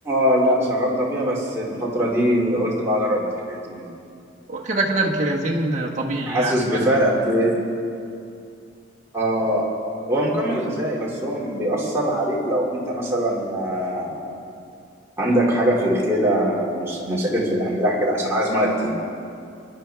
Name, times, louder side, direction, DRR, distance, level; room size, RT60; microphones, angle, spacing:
voice 1, 0.0-3.9 6.3-7.5 9.1-9.7 10.1-14.2 15.2-18.9, equal, 15° right, -5 dB, 2.5 m, -22 dB
voice 2, 4.5-7.1, right 2 dB, 35° right, -2 dB, 1.4 m, -24 dB
25.5 x 11.0 x 3.4 m, 2.5 s
head